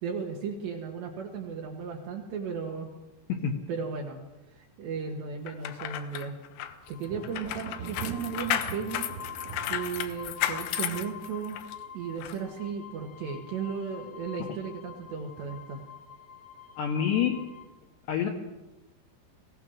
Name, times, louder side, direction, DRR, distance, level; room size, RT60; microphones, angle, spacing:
voice 1, 0.0-2.9 3.7-4.2 4.5-6.3 6.9-9.1 9.7-11.6 11.9-15.8, right 6 dB, 65° right, 0 dB, 3.4 m, -35 dB
sound 1, 5.5-11.7 12.2-12.4, left 12 dB, 90° left, 4.0 m, -33 dB
sound 2, 6.8-17.7, left 8 dB, 30° left, 2.3 m, -46 dB
Thunder, 7.1-13.5 13.8-14.4 14.9-15.7, right 7 dB, 85° right, 4.0 m, -45 dB
voice 2, 16.8-17.4 18.1-18.3, left 8 dB, 65° left, 0 dB, 3.2 m, -27 dB
21.5 x 17.0 x 7.4 m, 1.0 s
omnidirectional pair, 5.9 m